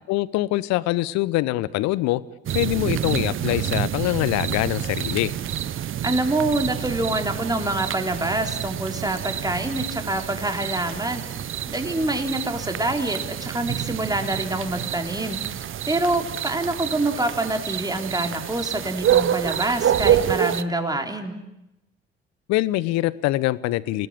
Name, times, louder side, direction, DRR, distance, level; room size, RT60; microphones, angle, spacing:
voice 1, 0.1-2.2 2.5-5.3 22.5-24.1, left 17 dB, 60° left, 19 dB, 1.0 m, -24 dB
sound 1, 2.5-20.6, right 10 dB, 40° right, 1.0 m, -27 dB
voice 2, 6.0-11.3 11.7-15.4 15.9-21.3, right 2 dB, 10° right, 5 dB, 3.7 m, -26 dB
28.5 x 18.5 x 8.9 m, 0.89 s
figure-of-eight pair, 50°, 31 cm